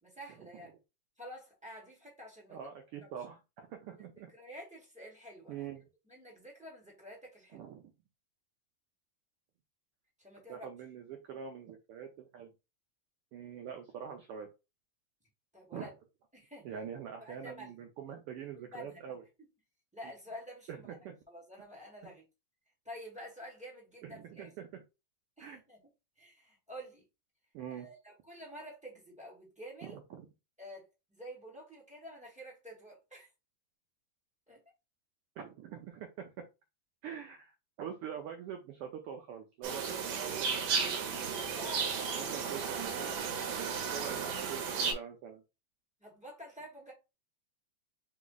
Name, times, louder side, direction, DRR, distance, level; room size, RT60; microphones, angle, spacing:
voice 1, 0.0-0.7 1.2-2.6 4.3-5.7 6.1-7.6 10.2-10.7 15.5-15.9 16.3-16.7 17.2-17.7 18.6-19.1 19.4-19.5 19.9-20.9 21.3-22.2 22.8-24.5 25.4-25.8 26.2-27.0 27.7-30.0 30.6-33.3 34.5-34.6 41.4-42.2 46.0-46.9, equal, 5° right, 0.8 m, -49 dB
voice 2, 2.5-4.3 5.5-5.8 7.5-7.9 10.5-12.5 13.3-14.5 15.7-15.9 16.6-19.2 20.7-21.2 22.0-22.1 24.0-24.8 25.4-25.6 27.5-27.9 29.8-30.3 35.4-36.3 37.0-40.5 40.8-41.4 42.2-43.3 43.6-45.4, right 8 dB, 90° right, 1.2 m, -44 dB
sound 1, 39.6-44.9, right 6 dB, 70° right, 2.1 m, -34 dB
4.7 x 2.3 x 3.9 m
omnidirectional pair, 3.3 m